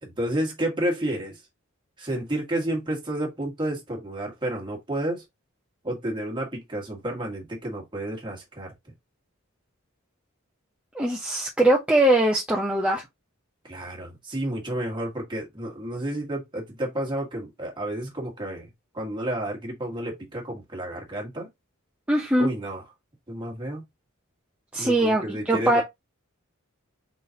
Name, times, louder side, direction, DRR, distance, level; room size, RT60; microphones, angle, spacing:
voice 1, 0.0-1.4 2.0-5.2 5.8-8.7 13.6-18.7 18.9-21.5 22.4-22.8 23.3-23.8 24.8-25.8, right 1 dB, 25° right, 1.6 m, -31 dB
voice 2, 10.9-13.0 22.1-22.5 24.7-25.8, right 1 dB, 5° right, 0.7 m, -21 dB
4.0 x 3.7 x 2.8 m
head